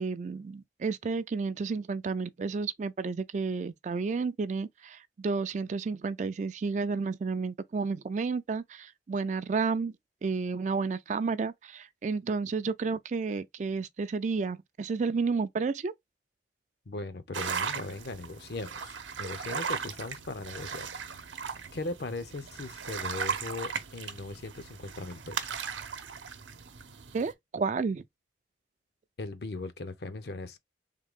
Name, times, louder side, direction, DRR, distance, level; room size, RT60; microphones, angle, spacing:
voice 1, 0.0-9.9 10.2-15.9 27.1-28.0, right 4 dB, 40° right, 0.3 m, -31 dB
voice 2, 16.9-21.3 21.7-25.6 29.2-30.6, left 2 dB, 60° left, 0.6 m, -39 dB
sound 1, 17.3-27.3, right 6 dB, 85° right, 0.8 m, -37 dB
3.7 x 3.2 x 3.6 m
head